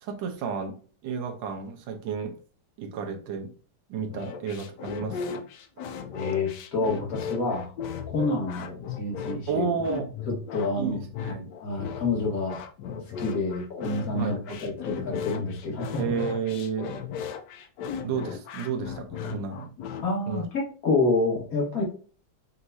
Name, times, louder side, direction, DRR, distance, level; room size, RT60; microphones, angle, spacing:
voice 1, 0.0-2.3 2.8-3.5 3.9-5.5 9.5-10.1 10.8-11.5 14.1-14.6 16.0-16.9 18.0-19.7 20.3-20.4, right 6 dB, 75° right, 4 dB, 1.4 m, -32 dB
sound 1, 4.1-20.1, left 6 dB, 70° left, 1.1 m, -36 dB
voice 2, 6.1-7.7 8.1-9.6 10.5-11.0 11.6-12.6 12.9-16.0 20.0-21.8, left 3 dB, 50° left, -2 dB, 1.9 m, -28 dB
5.7 x 3.0 x 2.6 m, 0.41 s
omnidirectional pair, 2.1 m